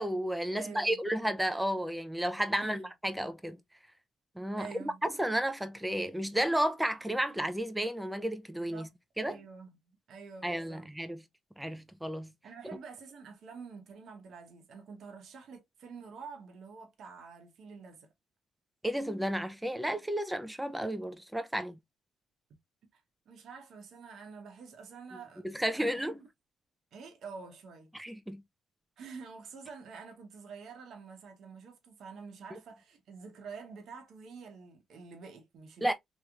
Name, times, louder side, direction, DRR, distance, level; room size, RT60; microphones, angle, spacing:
voice 1, 0.0-3.6 4.4-8.9 9.2-9.4 10.4-11.2 11.6-12.3 18.8-21.8 25.4-26.2 27.9-28.4 32.5-32.6 35.8-35.9, equal, 5° right, 0.6 m, -32 dB
voice 2, 0.6-1.2 2.6-2.9 4.5-5.0 8.6-8.9 9.2-10.9 12.4-18.1 22.9-23.0 23.3-26.1 26.9-27.9 29.0-35.9, right 5 dB, 65° right, 1.1 m, -48 dB
3.1 x 3.1 x 2.4 m
cardioid pair, 90°, 0 cm